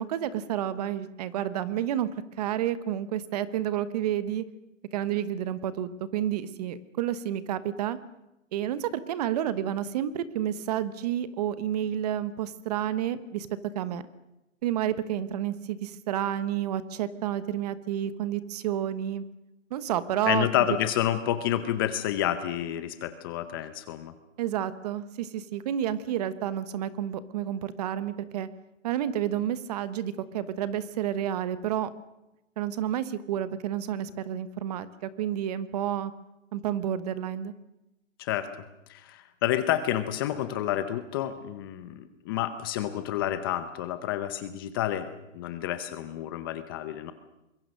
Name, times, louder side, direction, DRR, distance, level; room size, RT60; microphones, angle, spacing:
voice 1, 0.0-2.1 2.4-4.4 4.9-8.0 8.5-13.5 13.7-14.0 14.6-19.2 19.7-20.5 24.4-28.5 28.8-31.9 32.6-36.1 36.5-37.5, right 11 dB, 30° right, 15 dB, 1.1 m, -30 dB
voice 2, 20.2-24.1 38.2-38.5 38.9-47.1, left 12 dB, 15° left, 11 dB, 0.7 m, -29 dB
24.5 x 22.0 x 6.5 m, 0.93 s
hypercardioid pair, 160°, 40 cm